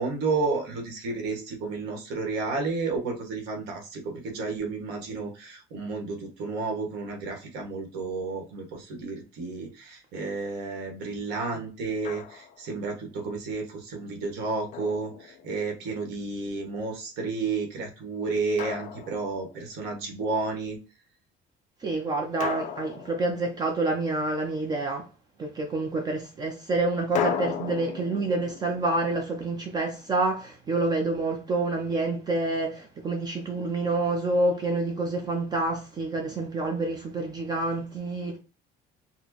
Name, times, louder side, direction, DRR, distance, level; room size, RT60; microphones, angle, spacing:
voice 1, 0.0-20.8, right 3 dB, 70° right, 1.2 m, -31 dB
Drum, 12.0-12.7 14.7-15.8 18.6-19.7 22.4-24.1 27.2-30.1, left 8 dB, 40° left, 0.4 m, -36 dB
voice 2, 21.8-25.1 25.4-38.4, right 2 dB, 20° right, 0.4 m, -28 dB
4.2 x 2.0 x 2.8 m
cardioid pair, 175°, 18 cm